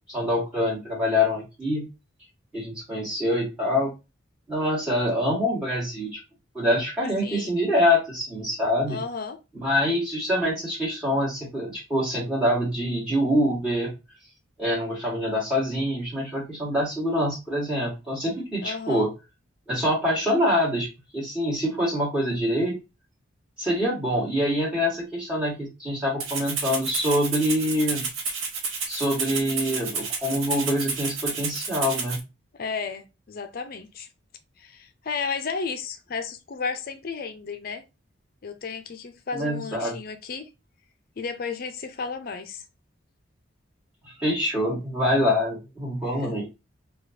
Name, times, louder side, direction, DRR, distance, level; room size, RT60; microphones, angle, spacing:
voice 1, 0.1-1.9 2.5-3.9 4.5-6.2 6.5-9.0 9.5-13.9 14.6-19.1 19.7-20.9 21.1-22.7 23.6-28.0 28.9-32.2 39.3-39.9 44.1-46.5, left 1 dB, 10° right, 1.3 m, -25 dB
voice 2, 7.2-7.6 8.9-9.4 18.6-19.1 32.5-34.1 34.6-37.8 38.4-40.5 41.2-42.6 46.2-46.4, left 5 dB, 45° left, 0.4 m, -33 dB
Rattle (instrument), 26.2-32.2, right 5 dB, 75° right, 0.8 m, -30 dB
4.9 x 2.3 x 2.5 m
head